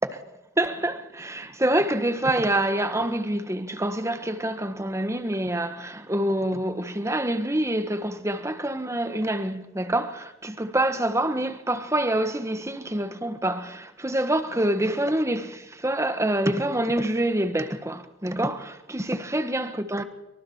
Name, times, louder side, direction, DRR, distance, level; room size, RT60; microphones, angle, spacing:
voice 1, 0.6-20.0, right 1 dB, 15° right, 1.4 m, -26 dB
27.0 x 24.0 x 4.5 m
head